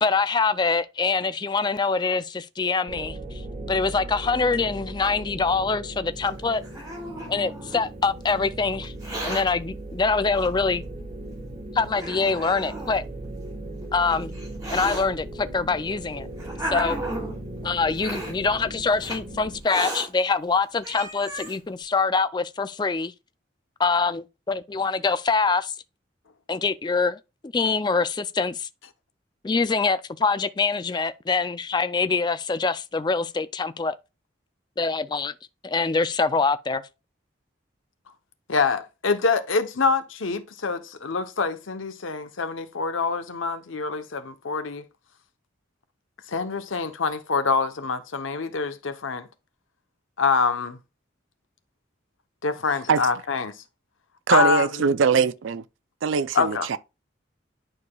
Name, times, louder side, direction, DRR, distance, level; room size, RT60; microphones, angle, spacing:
voice 1, 0.0-3.2 3.7-6.6 7.3-8.9 9.2-10.8 11.7-13.0 13.9-14.3 14.7-16.3 16.7-17.0 17.6-23.1 23.8-25.7 26.5-28.7 29.4-34.0 34.8-35.3 35.6-36.8, left 4 dB, 20° left, 0.3 m, -24 dB
sound 1, 2.9-19.6, right 1 dB, 35° right, 1.4 m, -38 dB
Hiss, 6.2-7.9 8.8-9.4 10.4-10.5 11.3-11.4 11.9-13.0 13.8-15.0 15.9-17.4 18.0-18.3 19.0-19.2 19.6-20.1 20.5-20.6 20.8-21.6, right 1 dB, 20° right, 2.9 m, -34 dB
voice 2, 38.5-44.9 46.3-49.3 50.2-50.8 52.4-53.5 54.3-54.8 56.3-56.7, left 4 dB, 85° left, 0.9 m, -25 dB
voice 3, 54.3-55.6 56.0-56.8, right 5 dB, 75° right, 0.4 m, -21 dB
10.5 x 4.8 x 2.3 m
head